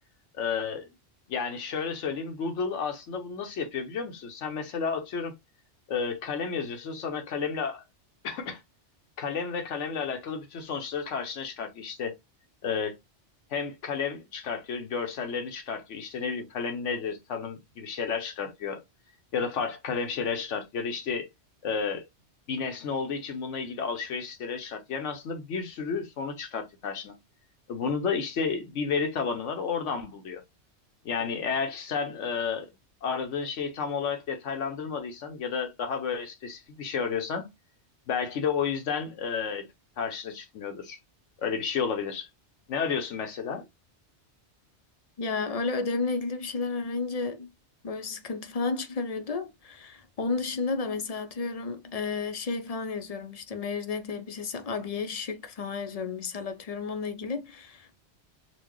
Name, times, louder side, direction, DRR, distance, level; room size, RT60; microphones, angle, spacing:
voice 1, 0.3-0.9 1.3-5.3 5.9-7.8 8.2-8.6 9.2-12.1 12.6-13.0 13.5-18.8 19.3-21.3 21.6-22.0 22.5-27.1 27.7-30.4 31.0-32.7 33.0-37.5 38.1-39.7 40.0-41.0 41.4-42.3 42.7-43.6, left 6 dB, 90° left, 1.1 m, -31 dB
voice 2, 45.2-47.5 47.8-58.0, left 4 dB, 50° left, 0.5 m, -32 dB
4.4 x 2.2 x 3.0 m
omnidirectional pair, 1.2 m